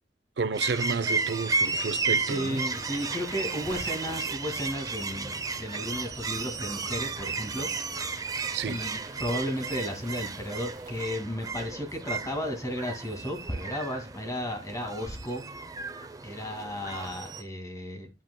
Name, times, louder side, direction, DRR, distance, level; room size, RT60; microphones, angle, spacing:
voice 1, 0.4-2.6 8.5-8.8, right 5 dB, 70° right, 0.6 m, -31 dB
sound 1, 0.5-17.4, right 4 dB, 20° right, 0.6 m, -33 dB
sound 2, 1.9-11.0, right 2 dB, 50° right, 1.3 m, -48 dB
voice 2, 2.2-8.1 8.7-15.4 16.2-18.1, equal, 20° left, 2.1 m, -34 dB
8.8 x 8.3 x 2.2 m
head